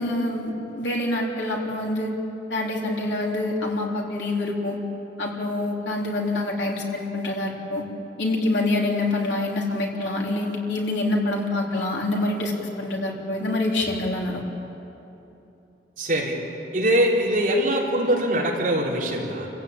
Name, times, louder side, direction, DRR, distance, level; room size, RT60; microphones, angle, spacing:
voice 1, 0.0-2.1 2.5-4.8 5.2-7.9 8.2-14.4, left 2 dB, 90° left, -1 dB, 3.6 m, -26 dB
voice 2, 16.0-16.4 16.7-19.5, right 1 dB, 45° right, -3 dB, 4.0 m, -22 dB
28.0 x 15.5 x 8.8 m, 2.9 s
head